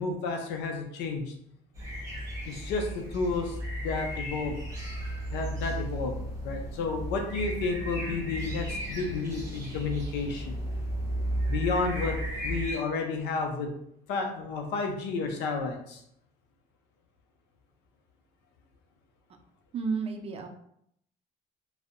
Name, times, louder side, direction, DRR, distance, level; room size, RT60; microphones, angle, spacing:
voice 1, 0.0-1.3 2.5-4.6 5.3-6.2 6.4-10.6 11.5-12.2 12.4-13.7 14.1-16.0, left 4 dB, 85° left, 3 dB, 0.5 m, -31 dB
sound 1, 1.7-12.8, right 1 dB, 20° right, 0.9 m, -34 dB
voice 2, 19.7-20.5, right 5 dB, 35° right, 3 dB, 0.4 m, -31 dB
2.6 x 2.0 x 2.4 m, 0.72 s
cardioid pair, 110°, 17 cm